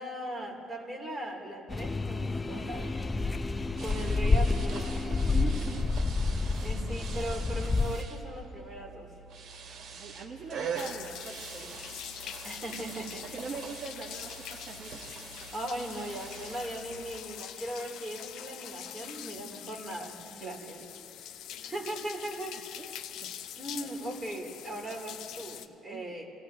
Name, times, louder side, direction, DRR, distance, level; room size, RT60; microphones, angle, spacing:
voice 1, 0.0-3.1 3.8-5.0 6.6-9.1 12.4-13.4 15.5-20.8 21.6-22.8 23.5-26.3, right 1 dB, 15° right, -2 dB, 3.1 m, -39 dB
sound 1, 1.7-8.0, left 3 dB, 20° left, 0.5 m, -29 dB
sound 2, 3.8-17.1, right 5 dB, 65° right, 2.2 m, -44 dB
voice 2, 5.3-5.9 6.8-7.0 9.7-11.7 13.2-15.0 20.4-20.8 22.8-22.9 23.2-23.4 23.7-23.9 25.9-26.1, right 4 dB, 45° right, 0 dB, 1.2 m, -42 dB
sound 3, 10.8-25.7, left 10 dB, 70° left, 0.6 m, -44 dB
28.0 x 17.0 x 2.9 m, 2.6 s
cardioid pair, 110°, 0 cm